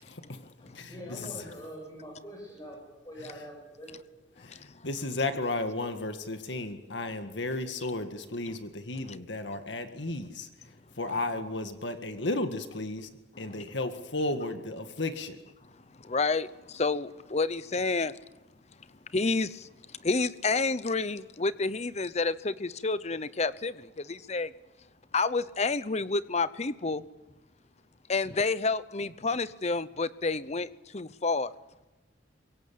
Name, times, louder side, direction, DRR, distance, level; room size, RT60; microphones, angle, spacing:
voice 1, 0.1-0.5 0.7-1.4 4.4-13.1 13.4-15.4, left 2 dB, 75° left, 1.9 m, -34 dB
voice 2, 0.6-3.9 9.8-10.0 11.0-11.2, equal, 20° left, 7.6 m, -44 dB
voice 3, 4.4-4.9 16.0-18.1 19.1-24.5 25.1-27.0 28.1-31.5, left 3 dB, 35° left, 0.8 m, -29 dB
24.0 x 22.5 x 8.6 m
head